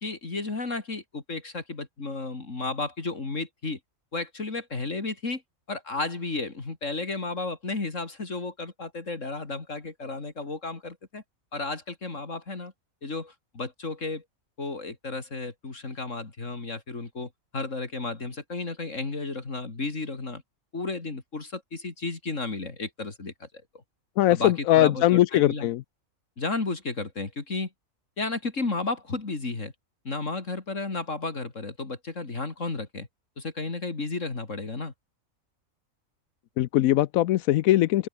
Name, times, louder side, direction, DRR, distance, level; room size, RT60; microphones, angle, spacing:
voice 1, 0.0-3.8 4.1-5.4 5.7-11.2 11.5-12.7 13.0-14.2 14.6-20.4 20.7-23.5 24.3-25.7 26.4-27.7 28.2-29.7 30.1-33.1 33.4-34.9, left 3 dB, 65° left, 3.4 m, -33 dB
voice 2, 24.2-25.8 36.6-38.1, left 14 dB, 85° left, 1.0 m, -21 dB
omnidirectional pair, 1.4 m